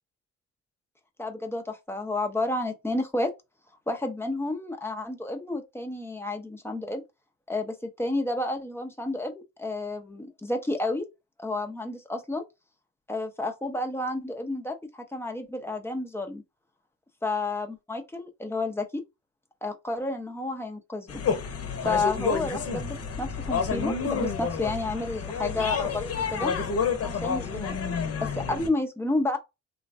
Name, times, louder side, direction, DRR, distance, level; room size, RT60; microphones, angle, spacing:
voice 1, 1.2-3.3 3.9-7.0 7.5-11.1 11.4-12.4 13.1-16.4 17.2-19.0 19.6-21.2 21.8-26.5 27.0-27.8 28.2-29.4, left 2 dB, 10° left, 0.6 m, -31 dB
sound 1, 21.1-28.7, left 6 dB, 55° left, 0.8 m, -29 dB
3.1 x 2.1 x 2.6 m
cardioid pair, 90°, 30 cm